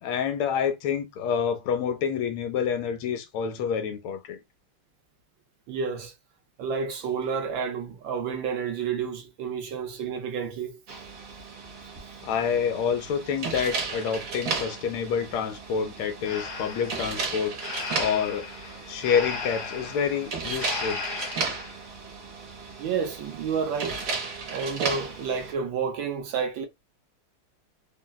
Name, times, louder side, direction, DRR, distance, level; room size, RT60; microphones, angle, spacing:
voice 1, 0.0-4.4 12.2-17.6 17.9-18.5 18.9-21.0, left 7 dB, 80° left, 1.4 m, -28 dB
voice 2, 5.7-6.1 6.6-10.8 22.8-24.0 24.5-26.7, right 6 dB, 75° right, 1.3 m, -30 dB
sound 1, 10.9-25.5, right 4 dB, 55° right, 1.0 m, -35 dB
Breathing, 16.2-21.8, left 4 dB, 60° left, 1.2 m, -36 dB
3.7 x 2.2 x 2.2 m
omnidirectional pair, 2.4 m